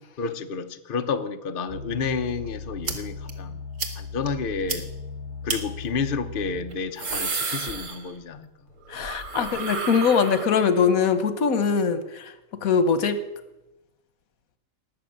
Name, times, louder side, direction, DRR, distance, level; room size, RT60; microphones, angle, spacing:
voice 1, 0.2-3.6 4.0-4.9 5.4-8.5 9.4-9.5, left 5 dB, 45° left, 7 dB, 1.0 m, -30 dB
sound 1, 1.7-6.8 7.4-7.5, left 4 dB, 85° right, 6.1 m, -38 dB
sound 2, 2.9-3.0 3.3-3.4 3.8-3.9 4.3-4.4 4.7-4.8 5.5-5.6 6.7-8.4 8.7-10.8, right 4 dB, 65° right, 1.9 m, -31 dB
voice 2, 8.9-12.3 12.6-13.2, left 5 dB, 85° left, 12 dB, 1.5 m, -22 dB
18.5 x 6.7 x 8.6 m, 0.97 s
omnidirectional pair, 1.4 m